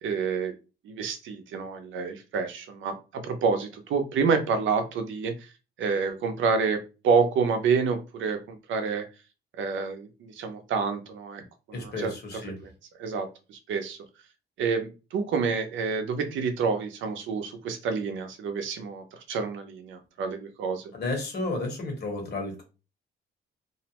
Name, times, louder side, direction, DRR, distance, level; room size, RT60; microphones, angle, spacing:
voice 1, 0.0-0.5 0.8-5.5 5.8-6.8 7.0-9.1 9.6-11.4 11.7-12.1 12.6-12.7 13.0-14.0 14.6-20.9, right 5 dB, 75° right, 7 dB, 0.6 m, -28 dB
voice 2, 11.7-12.5 20.9-22.6, left 2 dB, 55° left, 2 dB, 1.2 m, -32 dB
2.6 x 2.0 x 2.9 m, 0.31 s
cardioid pair, 90°, 20 cm